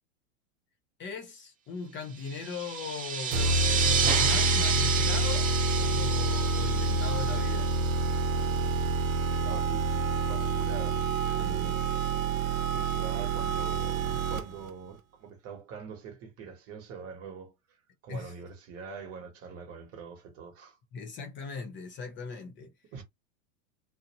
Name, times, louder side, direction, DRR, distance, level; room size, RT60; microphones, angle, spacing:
voice 1, 1.0-7.7 11.3-11.8 18.1-18.3 20.9-22.7, left 5 dB, 30° left, 0.8 m, -39 dB
sound 1, 2.3-8.5, right 7 dB, 20° right, 0.7 m, -30 dB
sound 2, 3.3-14.7, right 3 dB, 85° right, 0.7 m, -28 dB
voice 2, 9.4-11.0 11.3-11.8 12.7-17.8 18.0-20.8 22.9-23.0, right 5 dB, 35° right, 1.2 m, -44 dB
2.5 x 2.1 x 2.9 m
hypercardioid pair, 115°, 40 cm